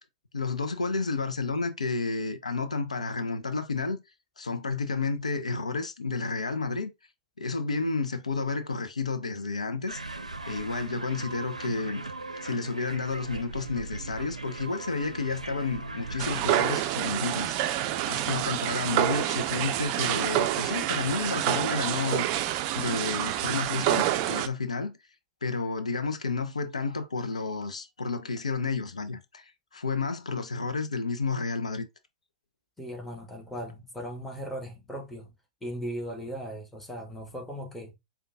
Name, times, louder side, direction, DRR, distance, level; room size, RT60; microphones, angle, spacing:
voice 1, 0.3-4.0 4.4-6.9 7.4-10.2 10.5-12.0 12.4-17.8 18.0-22.3 22.8-25.0 25.4-31.9, left 4 dB, 80° left, 0.5 m, -31 dB
sound 1, 9.9-16.5, right 3 dB, 90° right, 0.5 m, -39 dB
sound 2, 16.2-24.5, right 12 dB, 40° right, 0.4 m, -28 dB
voice 2, 32.8-35.3 35.6-38.0, equal, 5° left, 1.1 m, -38 dB
5.1 x 2.3 x 2.6 m
figure-of-eight pair, 105°, 4 cm